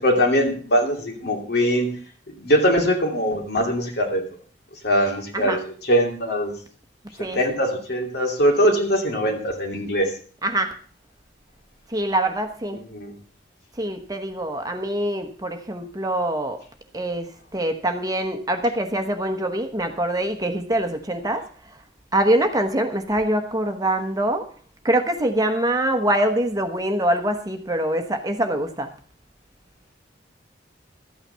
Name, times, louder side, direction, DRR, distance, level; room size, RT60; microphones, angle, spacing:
voice 1, 0.0-1.9 2.4-4.2 4.8-6.5 7.2-10.1 12.9-13.1, equal, 60° left, 2 dB, 2.7 m, -21 dB
voice 2, 10.4-10.7 11.9-12.8 13.8-16.6 16.9-21.4 22.1-24.5 24.8-28.9, right 1 dB, 20° right, 6 dB, 1.1 m, -24 dB
13.0 x 9.0 x 5.6 m, 0.44 s
head